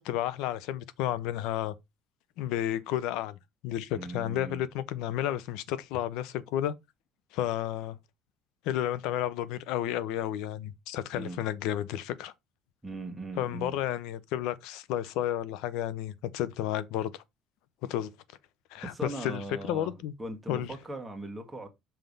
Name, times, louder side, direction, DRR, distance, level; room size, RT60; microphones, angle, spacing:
voice 1, 0.0-1.7 2.4-6.7 7.3-8.0 8.6-12.3 13.4-17.2 17.8-18.1 18.7-20.1 20.5-20.7, left 12 dB, 80° left, 0.7 m, -32 dB
voice 2, 3.9-4.6 11.1-11.4 12.8-13.8 18.8-21.7, right 2 dB, 10° right, 1.5 m, -39 dB
5.7 x 3.4 x 5.3 m
cardioid pair, 145°, 0 cm